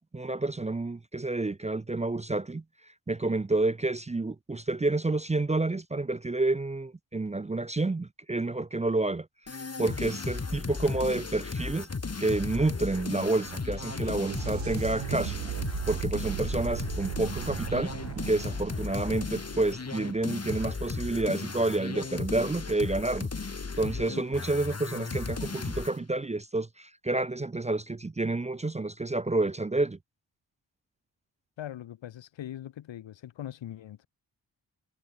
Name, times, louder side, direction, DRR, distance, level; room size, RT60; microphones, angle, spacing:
voice 1, 0.1-2.6 3.1-9.3 9.8-11.9 12.2-15.4 15.9-17.9 18.3-23.3 23.8-30.0, right 2 dB, 15° right, 0.6 m, -29 dB
sound 1, 9.5-26.0, left 4 dB, 30° left, 2.2 m, -35 dB
sound 2, 12.8-20.4 23.7-23.8 24.9-25.0, right 14 dB, 75° right, 0.8 m, -38 dB
voice 2, 31.6-34.1, left 11 dB, 70° left, 1.0 m, -41 dB
supercardioid pair, 45°, 47 cm